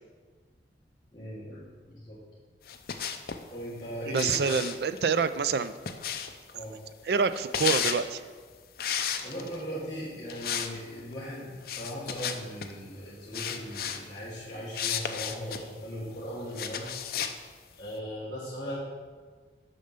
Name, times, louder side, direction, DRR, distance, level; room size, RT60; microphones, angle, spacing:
voice 1, 1.1-2.2 3.5-4.3 6.5-6.8 9.2-16.9 17.7-18.8, equal, 20° left, -9 dB, 1.6 m, -38 dB
sound 1, 2.7-3.4 4.2-6.5 7.3-8.0 8.8-9.6 10.3-10.7 11.0-11.1 11.6-12.7 13.3-14.0 14.7-15.6 16.5-17.4, left 8 dB, 55° left, 0.5 m, -33 dB
voice 2, 4.1-5.7 7.1-8.2, right 5 dB, 60° right, 12 dB, 0.4 m, -27 dB
6.7 x 5.4 x 6.6 m, 1.5 s
head